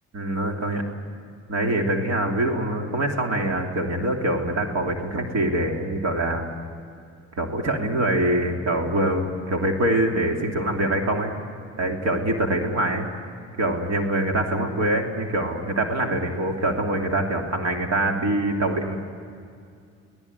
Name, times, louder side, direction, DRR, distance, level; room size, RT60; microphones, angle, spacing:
voice 1, 0.1-0.8 1.5-6.5 7.4-11.3 11.8-13.1 13.6-19.0, right 1 dB, 60° right, 2 dB, 3.0 m, -24 dB
29.5 x 18.0 x 9.7 m, 2.3 s
cardioid pair, 90°, 30 cm